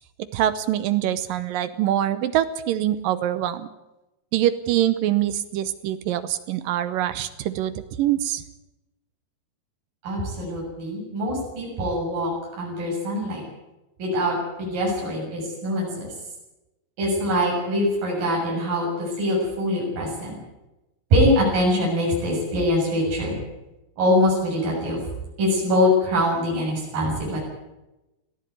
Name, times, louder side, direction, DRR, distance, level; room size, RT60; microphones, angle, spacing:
voice 1, 0.3-3.7 4.3-8.4, right 12 dB, 75° right, 12 dB, 2.1 m, -24 dB
voice 2, 10.0-12.3 12.6-13.4 14.0-15.9 17.0-20.4 21.1-23.4 24.0-25.0 25.4-27.5, left 1 dB, 55° right, -3 dB, 8.5 m, -23 dB
20.5 x 15.0 x 9.3 m, 0.98 s
omnidirectional pair, 4.8 m